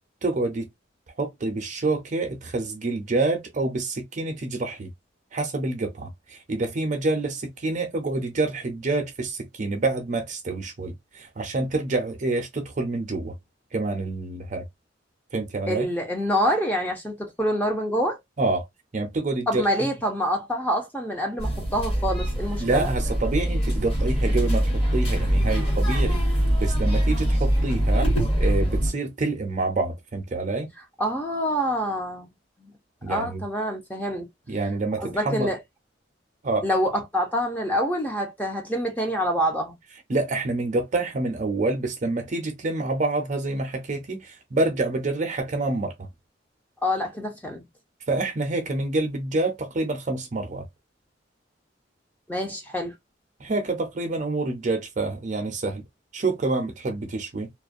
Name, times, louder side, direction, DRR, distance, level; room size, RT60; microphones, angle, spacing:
voice 1, 0.2-0.7 1.2-4.9 5.3-13.3 13.7-14.6 15.3-15.9 18.4-18.7 18.9-19.9 22.6-26.2 26.6-28.1 28.4-30.7 33.0-33.4 34.5-35.5 36.4-36.7 40.1-46.1 48.1-50.7 53.4-55.8 56.1-57.5, right 2 dB, 45° right, 0.5 m, -27 dB
voice 2, 15.7-18.2 19.5-22.9 31.0-32.3 32.6-32.7 33.1-34.3 35.0-35.6 36.6-39.8 46.8-47.6 52.3-52.9, equal, 10° left, 0.6 m, -26 dB
sound 1, 21.4-28.9, equal, 35° left, 1.3 m, -23 dB
2.4 x 2.1 x 2.4 m
head